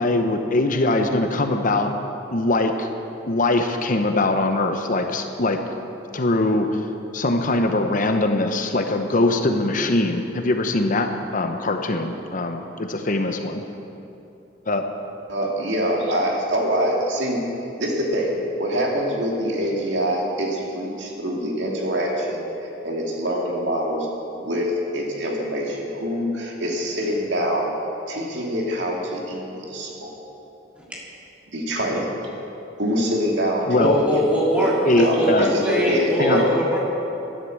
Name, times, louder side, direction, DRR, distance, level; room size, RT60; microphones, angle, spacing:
voice 1, 0.0-1.9 2.3-2.9 3.3-5.6 6.1-6.8 7.1-13.6 14.7-14.8 33.7-34.0 34.9-35.5 36.2-36.4, left 2 dB, 45° left, 5 dB, 0.9 m, -22 dB
voice 2, 15.3-17.4 17.8-24.1 24.3-27.7 28.1-30.1 31.5-32.1 32.8-34.2 34.5-36.5, equal, 70° right, -1 dB, 2.4 m, -25 dB
voice 3, 33.8-36.8, equal, 5° right, -6 dB, 3.1 m, -22 dB
11.5 x 11.0 x 7.6 m, 2.9 s
head